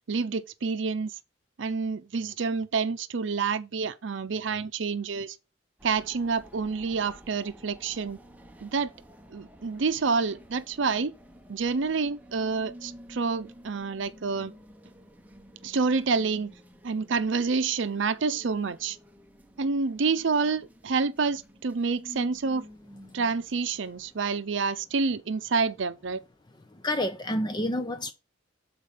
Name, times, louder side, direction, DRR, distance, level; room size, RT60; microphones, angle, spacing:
voice 1, 0.1-1.1 1.6-5.4 5.8-8.2 8.6-8.9 9.3-11.1 11.5-14.5 15.6-16.5 16.8-19.0 19.6-22.6 23.1-26.2, right 4 dB, 75° right, 0.6 m, -28 dB
sound 1, 5.8-24.1, equal, 10° right, 0.8 m, -51 dB
voice 2, 26.7-28.1, left 1 dB, 20° left, 0.5 m, -29 dB
6.5 x 4.4 x 5.4 m
head